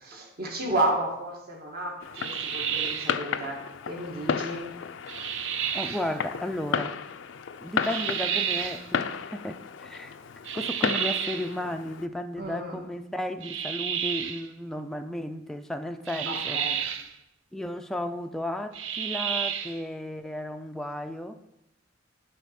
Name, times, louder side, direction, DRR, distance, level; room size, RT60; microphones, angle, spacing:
voice 1, 0.0-4.6 12.4-12.8 16.2-16.8, right 1 dB, 55° right, -1 dB, 1.7 m, -32 dB
Fireworks, 2.0-12.1, left 6 dB, 75° left, 0.4 m, -34 dB
sound 1, 2.1-3.2 5.1-6.1 7.8-8.8 10.4-11.5 13.4-14.4 16.1-17.1 18.7-19.8, right 7 dB, 80° right, 0.7 m, -31 dB
voice 2, 5.7-7.0 7.6-10.1 10.5-16.6 17.5-21.4, left 1 dB, ahead, 6 dB, 0.4 m, -34 dB
9.4 x 4.1 x 5.8 m, 0.86 s
head